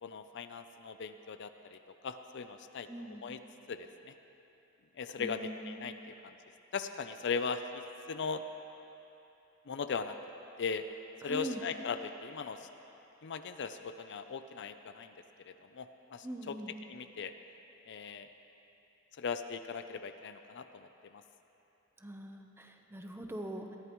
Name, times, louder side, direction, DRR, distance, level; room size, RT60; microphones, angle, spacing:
voice 1, 0.0-3.4 3.7-4.1 5.0-6.3 6.7-8.4 9.7-10.2 10.6-10.8 11.2-12.7 13.2-15.1 15.5-17.3 17.9-18.3 19.2-21.2, left 5 dB, 55° left, 9 dB, 0.5 m, -39 dB
voice 2, 2.9-3.2 5.2-5.8 11.2-11.6 16.2-16.7 22.0-23.8, right 1 dB, 10° right, 3 dB, 0.8 m, -42 dB
20.5 x 14.5 x 3.1 m, 3.0 s
head